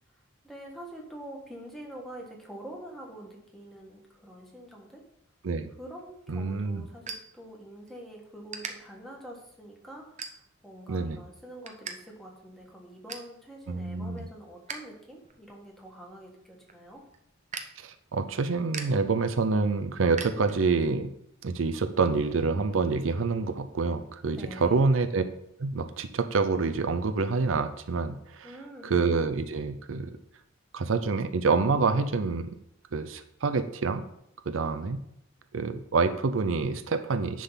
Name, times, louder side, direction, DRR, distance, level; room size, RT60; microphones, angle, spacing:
voice 1, 0.4-5.0 5.8-17.0 24.3-24.9 28.4-28.9, right 1 dB, ahead, -1 dB, 1.6 m, -45 dB
sound 1, 5.9-8.0 8.5-8.7 9.3-9.5 10.2-10.7 11.1-12.0 12.2-12.3 12.7-13.3 13.8-14.9 15.2-20.9, right 5 dB, 35° right, 0.8 m, -42 dB
voice 2, 6.3-6.8 10.9-11.2 13.7-14.3 17.8-21.1 21.4-25.2 25.6-28.5 28.8-30.2 30.7-32.5 32.9-34.0 34.5-35.0 35.5-37.4, right 4 dB, 75° right, 10 dB, 0.6 m, -27 dB
10.0 x 3.8 x 5.7 m, 0.77 s
head